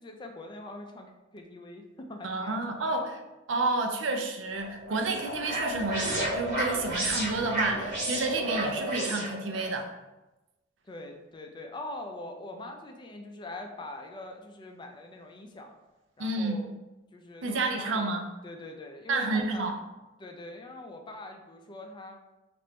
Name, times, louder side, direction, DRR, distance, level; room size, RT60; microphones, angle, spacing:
voice 1, 0.0-2.8 10.8-15.8 16.2-16.7 17.1-18.2 18.4-19.7 20.2-22.2, left 2 dB, 25° left, 4 dB, 0.4 m, -43 dB
voice 2, 2.2-3.2 3.5-9.9 16.2-16.7 17.4-18.3 19.1-19.7, right 3 dB, 75° right, 4 dB, 0.5 m, -30 dB
sound 1, 4.5-9.7, right 1 dB, 50° right, 1.2 m, -32 dB
4.2 x 2.5 x 3.4 m, 1.0 s
head